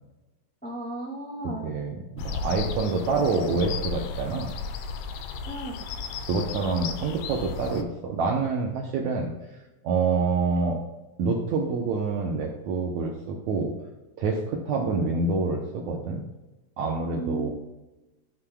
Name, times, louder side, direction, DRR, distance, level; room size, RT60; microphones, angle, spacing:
voice 1, 0.6-1.7 5.4-5.8 14.6-15.0 17.1-17.5, right 1 dB, 15° left, -3 dB, 0.3 m, -35 dB
voice 2, 1.6-4.5 6.3-10.8 11.2-13.7 14.2-16.2 16.8-17.5, right 4 dB, 75° right, 1 dB, 1.7 m, -27 dB
sound 1, 2.2-7.8, left 5 dB, 80° left, 1.9 m, -34 dB
13.5 x 6.5 x 2.3 m, 1.1 s
omnidirectional pair, 4.3 m